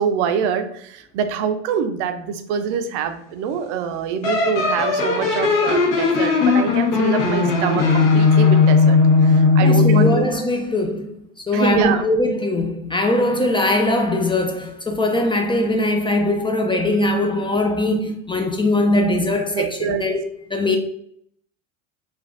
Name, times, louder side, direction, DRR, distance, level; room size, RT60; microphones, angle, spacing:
voice 1, 0.0-10.3 11.5-12.0 19.5-20.0 20.6-20.8, right 7 dB, 70° right, 0.6 m, -25 dB
sound 1, 4.2-10.3, left 4 dB, 60° left, 1.2 m, -17 dB
voice 2, 9.6-11.1 11.5-20.2 20.5-20.8, left 1 dB, 15° left, 0.3 m, -21 dB
3.3 x 2.4 x 2.5 m
hypercardioid pair, 85°, 37 cm